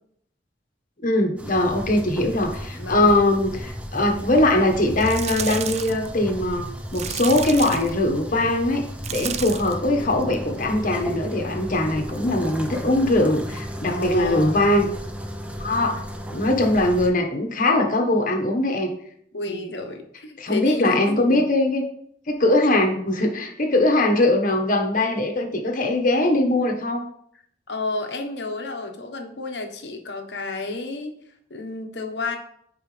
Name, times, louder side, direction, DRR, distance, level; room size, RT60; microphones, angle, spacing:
voice 1, 1.0-8.8 9.1-14.9 15.6-16.0 16.3-18.9 19.5-19.6 20.4-21.8 22.3-27.0, left 1 dB, 50° left, 2 dB, 1.4 m, -21 dB
sound 1, 1.4-17.1, equal, 10° right, 0.8 m, -34 dB
voice 2, 2.8-3.1 13.9-14.6 19.3-21.4 27.7-31.1 31.5-32.4, left 3 dB, 70° left, 4 dB, 1.2 m, -31 dB
sound 2, 4.9-6.1 6.9-8.0 9.0-9.8 10.2-10.6 12.1-12.2, right 8 dB, 40° right, 0.4 m, -31 dB
14.5 x 4.8 x 3.3 m, 0.70 s
head